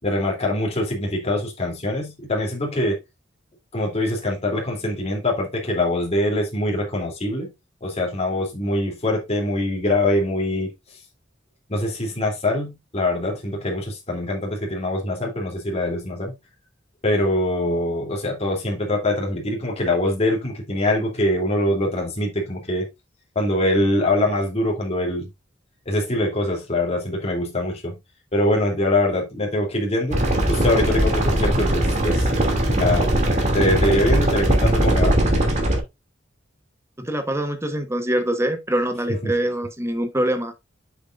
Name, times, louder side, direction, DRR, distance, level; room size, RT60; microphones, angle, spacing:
voice 1, 0.0-3.0 3.7-7.5 7.8-10.7 11.7-16.3 17.0-22.9 23.3-25.3 25.8-28.0 28.3-32.3 32.7-33.1 33.5-35.2 39.2-39.3, left 1 dB, 35° left, 3.2 m, -23 dB
sound 1, 30.1-35.8, right 1 dB, 40° right, 2.7 m, -20 dB
voice 2, 37.0-40.5, right 1 dB, 15° right, 1.2 m, -24 dB
8.0 x 7.3 x 2.6 m
head